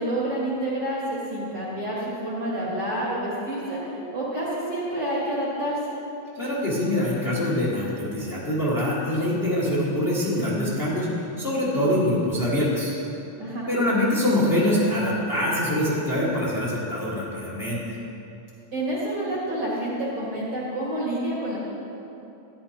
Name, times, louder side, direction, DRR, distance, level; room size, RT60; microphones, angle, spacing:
voice 1, 0.0-5.8 13.4-13.7 18.7-21.6, right 1 dB, 40° right, -7 dB, 2.0 m, -28 dB
voice 2, 6.3-12.9 13.7-17.9, left 1 dB, 25° left, -7 dB, 1.6 m, -24 dB
13.0 x 10.5 x 2.9 m, 2.8 s
omnidirectional pair, 3.3 m